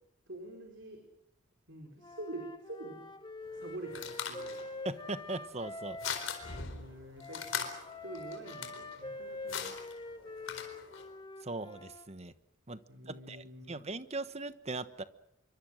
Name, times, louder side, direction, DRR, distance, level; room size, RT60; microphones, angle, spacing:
voice 1, 0.3-1.0 1.7-3.0 3.5-4.6 6.5-7.4 8.0-9.7 12.9-13.8, right 1 dB, 65° right, 3 dB, 4.4 m, -46 dB
Wind instrument woodwind instrument, 2.0-6.6 7.2-12.1, left 2 dB, 25° left, 1.7 m, -45 dB
sound 1, 3.4-11.1, left 6 dB, 75° left, 4.4 m, -42 dB
voice 2, 4.8-6.0 11.4-12.3 12.7-15.0, right 2 dB, 35° right, 12 dB, 1.2 m, -40 dB
27.0 x 24.5 x 6.5 m, 0.77 s
head